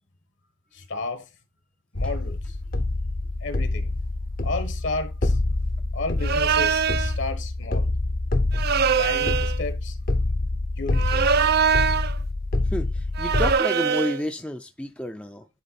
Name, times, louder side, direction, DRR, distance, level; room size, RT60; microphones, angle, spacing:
voice 1, 0.7-1.2 1.9-2.6 3.4-3.9 4.4-5.4 5.9-7.9 9.0-10.0 10.8-11.5, left 3 dB, 65° left, 1.5 m, -32 dB
sound 1, 2.0-13.5, left 2 dB, 45° left, 0.8 m, -26 dB
sound 2, 6.2-7.1 8.5-9.6 10.9-12.2 13.2-14.2, right 6 dB, 50° right, 0.4 m, -22 dB
voice 2, 12.7-15.5, equal, 5° left, 0.5 m, -30 dB
10.0 x 3.7 x 4.2 m
head